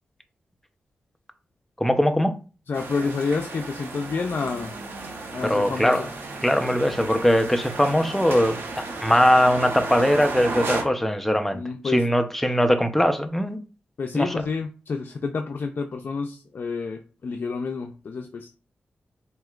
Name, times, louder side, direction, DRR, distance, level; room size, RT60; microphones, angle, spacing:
voice 1, 1.8-2.3 5.4-6.1 6.4-8.6 9.0-13.6 14.1-14.3, equal, 5° left, 0.7 m, -21 dB
voice 2, 2.7-4.7 5.3-6.1 6.6-6.8 11.5-12.0 14.0-18.5, left 4 dB, 60° left, 0.5 m, -29 dB
sound 1, 2.7-10.8, right 3 dB, 85° right, 1.0 m, -34 dB
7.6 x 2.8 x 2.4 m
cardioid pair, 70°, 4 cm